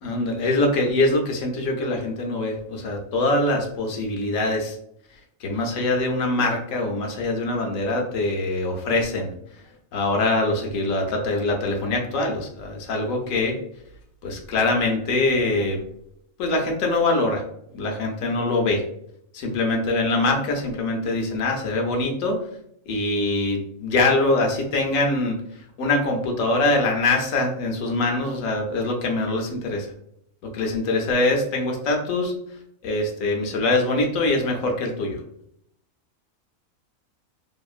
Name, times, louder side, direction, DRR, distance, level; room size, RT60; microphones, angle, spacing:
voice 1, 0.0-4.7 5.4-9.3 9.9-13.5 14.2-15.8 16.4-17.4 17.7-18.8 19.3-22.4 22.9-25.4 25.8-29.9 30.4-32.3 32.8-35.2, left 2 dB, 80° left, 2 dB, 1.1 m, -23 dB
2.9 x 2.4 x 2.3 m, 0.71 s
omnidirectional pair, 1.4 m